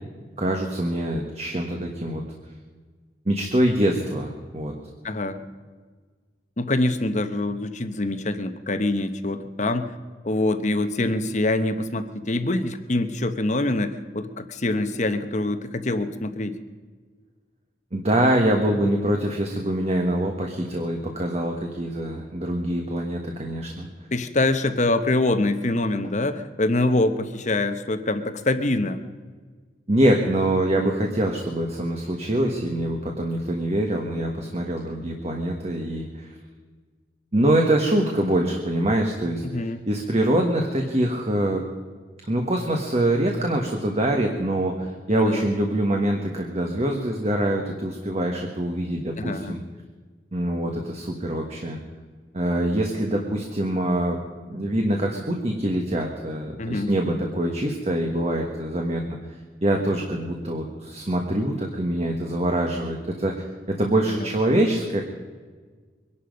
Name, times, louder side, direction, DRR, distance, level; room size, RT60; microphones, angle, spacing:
voice 1, 0.4-2.2 3.2-4.7 17.9-23.9 29.9-36.4 37.3-41.6 42.3-49.6 50.3-51.8 52.3-54.2 54.5-59.2 59.6-65.0, right 1 dB, 35° right, 2 dB, 1.4 m, -24 dB
voice 2, 5.0-5.4 6.6-9.9 10.2-16.5 24.1-29.0 39.4-39.8 45.1-45.4 49.2-49.6 56.6-56.9 64.2-64.3, left 2 dB, 40° left, 10 dB, 1.0 m, -25 dB
23.0 x 11.5 x 5.3 m, 1.5 s
head